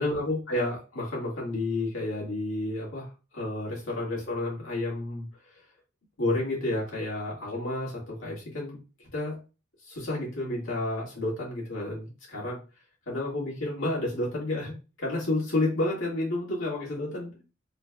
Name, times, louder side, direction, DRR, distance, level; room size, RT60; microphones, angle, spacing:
voice 1, 0.0-5.3 6.2-9.4 9.8-12.6 13.1-17.4, left 2 dB, 70° left, -4 dB, 1.9 m, -31 dB
4.0 x 3.3 x 2.3 m, 0.31 s
head